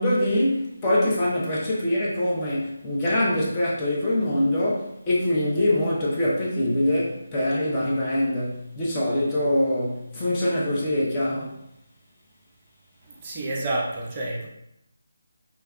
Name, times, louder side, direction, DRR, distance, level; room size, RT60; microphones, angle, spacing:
voice 1, 0.0-11.6, left 1 dB, 20° left, 0.8 m, -24 dB
voice 2, 13.2-14.5, right 2 dB, 25° right, 0.6 m, -29 dB
3.3 x 2.9 x 2.3 m
figure-of-eight pair, 155°, 0 cm